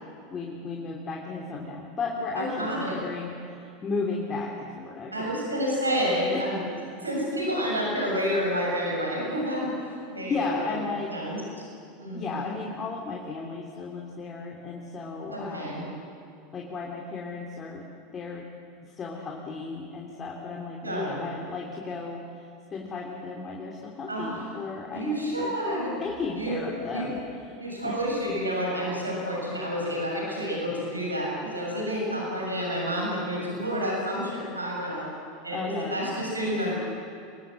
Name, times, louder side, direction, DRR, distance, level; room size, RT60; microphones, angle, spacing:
voice 1, 0.3-5.4 6.3-6.4 10.2-11.5 12.1-15.9 16.5-17.9 18.1-18.5 18.8-25.5 26.0-27.2 27.5-27.9 35.5-36.1, left 4 dB, 25° left, -1 dB, 3.1 m, -35 dB
voice 2, 2.4-3.0 5.1-6.6 7.0-10.7 11.1-11.4 12.0-12.5 15.3-15.9 20.8-21.3 24.1-24.4 24.9-26.0 26.4-26.6 26.9-27.1 27.6-35.1 35.4-36.7, equal, 85° right, -2 dB, 7.0 m, -29 dB
24.5 x 21.0 x 7.8 m, 2.5 s
figure-of-eight pair, 80°, 0 cm